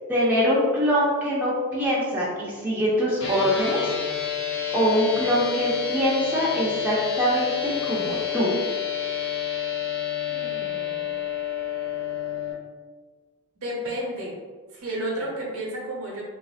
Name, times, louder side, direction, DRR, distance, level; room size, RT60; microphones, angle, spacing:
voice 1, 0.1-3.9 4.7-8.5, equal, 10° right, -7 dB, 0.5 m, -23 dB
sound 1, 3.2-12.5, left 9 dB, 55° left, 0.6 m, -29 dB
voice 2, 10.3-11.1 13.6-14.3 14.7-16.2, right 1 dB, 70° right, -3 dB, 0.9 m, -32 dB
3.1 x 2.5 x 2.4 m, 1.4 s
head